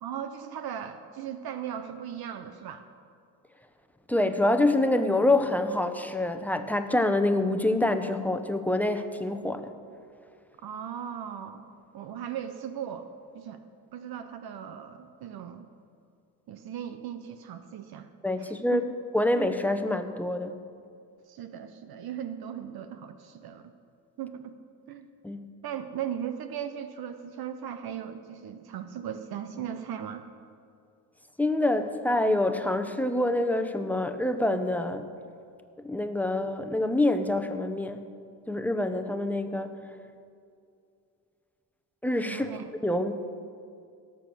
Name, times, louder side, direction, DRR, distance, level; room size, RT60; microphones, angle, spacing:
voice 1, 0.0-2.8 10.6-11.6 11.9-13.1 13.3-13.6 13.9-15.7 16.5-18.1 18.4-18.8 21.3-23.7 24.2-24.5 24.9-25.1 25.6-30.2 42.3-42.7, right 9 dB, 60° right, 9 dB, 0.9 m, -37 dB
voice 2, 4.1-9.7 18.2-18.8 19.1-20.6 25.2-25.5 31.4-35.1 35.8-38.0 38.5-39.8 42.0-43.1, left 1 dB, 5° left, 8 dB, 0.9 m, -26 dB
17.5 x 7.0 x 6.3 m, 2.4 s
cardioid pair, 85°, 41 cm